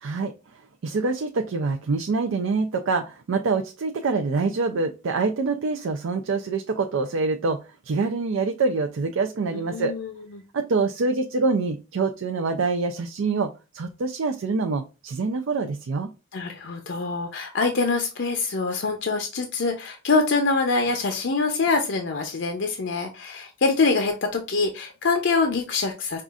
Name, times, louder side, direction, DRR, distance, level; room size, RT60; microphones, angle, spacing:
voice 1, 0.0-9.9 10.5-16.1, right 4 dB, 85° right, 6 dB, 0.4 m, -25 dB
voice 2, 9.5-10.1 16.3-26.2, left 4 dB, 60° left, 4 dB, 0.5 m, -24 dB
5.4 x 2.5 x 2.4 m, 0.30 s
head